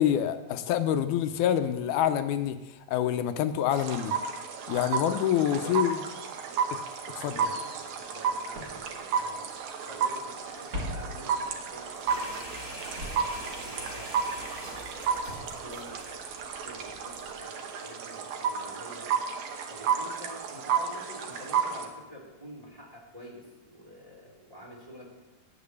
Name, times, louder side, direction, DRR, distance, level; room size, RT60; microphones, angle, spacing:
voice 1, 0.0-2.6 2.9-4.1 4.7-6.0 7.2-7.3, left 10 dB, 85° left, 10 dB, 2.1 m, -26 dB
sound 1, 3.7-21.9, right 6 dB, 75° right, 2.5 m, -32 dB
voice 2, 7.1-9.4 9.8-14.5 15.0-16.0 16.5-19.1 19.7-25.2, equal, 10° right, -2 dB, 2.2 m, -47 dB
Walk footsteps, 7.8-7.9 8.5-10.0 10.3-12.6 13.0-17.0 17.3-17.4, left 1 dB, 30° right, 1.5 m, -43 dB
sound 2, 12.1-17.3, equal, 15° left, 5.0 m, -44 dB
10.0 x 8.8 x 6.9 m, 1.1 s
omnidirectional pair, 3.5 m